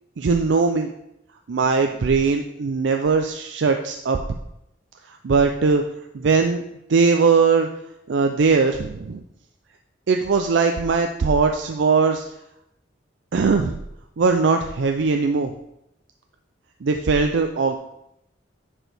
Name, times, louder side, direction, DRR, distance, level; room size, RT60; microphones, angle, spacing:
voice 1, 0.2-0.9 1.5-4.2 5.1-5.8 6.1-6.6 6.9-7.7 8.1-9.2 10.1-12.2 13.3-13.8 14.2-15.5 16.8-17.8, right 4 dB, 75° right, 5 dB, 0.4 m, -20 dB
10.0 x 4.5 x 3.4 m, 0.82 s
head